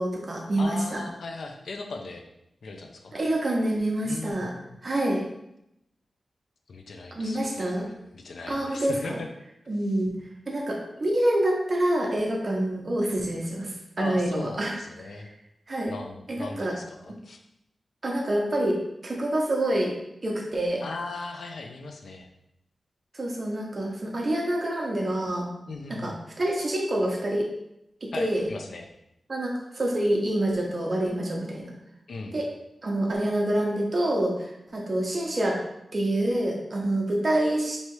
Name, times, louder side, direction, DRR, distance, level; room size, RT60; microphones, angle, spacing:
voice 1, 0.0-1.0 3.1-4.5 4.8-5.2 7.1-7.9 8.5-9.2 9.7-10.1 10.5-14.7 15.7-15.9 16.3-16.7 18.0-18.8 19.0-19.9 20.2-20.8 23.1-25.5 25.9-27.5 28.0-28.4 29.3-31.7 32.3-32.5 32.8-35.6 35.9-37.8, right 1 dB, 35° right, -1 dB, 0.8 m, -27 dB
voice 2, 0.6-2.2 2.6-3.2 4.0-4.8 6.7-9.3 14.0-15.3 15.9-17.4 20.8-22.3 25.7-26.2 28.1-28.9 32.1-32.4, left 3 dB, 70° left, 3 dB, 0.5 m, -38 dB
3.2 x 2.7 x 4.6 m, 0.82 s
wide cardioid pair, 150°, 0 cm